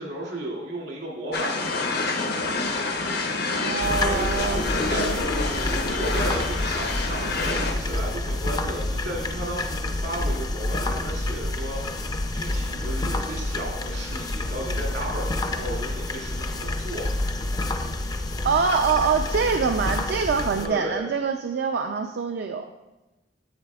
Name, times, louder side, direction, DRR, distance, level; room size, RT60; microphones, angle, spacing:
voice 1, 0.0-1.8 4.7-5.2 5.6-12.1 12.3-17.0 20.5-21.1, right 1 dB, 80° right, -3 dB, 2.3 m, -34 dB
sound 1, 1.3-7.7, left 3 dB, 60° left, 0.7 m, -27 dB
voice 2, 3.6-5.2 18.4-22.7, right 5 dB, 65° right, 5 dB, 0.4 m, -25 dB
sound 2, 3.8-20.7, left 2 dB, 20° left, 0.4 m, -28 dB
9.5 x 7.3 x 2.3 m, 1.1 s
head